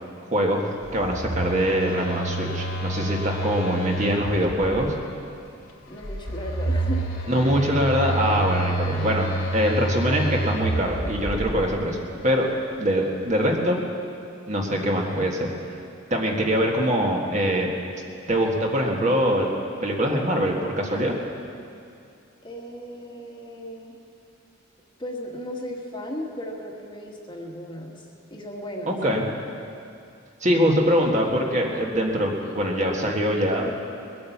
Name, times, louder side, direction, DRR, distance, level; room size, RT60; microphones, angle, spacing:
voice 1, 0.3-4.9 7.3-12.5 12.8-13.8 14.5-15.5 16.1-17.7 18.3-19.5 19.8-21.2 28.9-29.3 30.4-33.7, equal, 35° right, 0 dB, 1.6 m, -23 dB
Telephone, 0.8-4.9 6.0-11.7, right 1 dB, 90° left, 2.3 m, -29 dB
voice 2, 5.9-7.1 22.4-24.0 25.0-27.9 28.3-29.0, equal, 25° left, 0 dB, 1.5 m, -35 dB
21.0 x 8.6 x 7.2 m, 2.5 s
head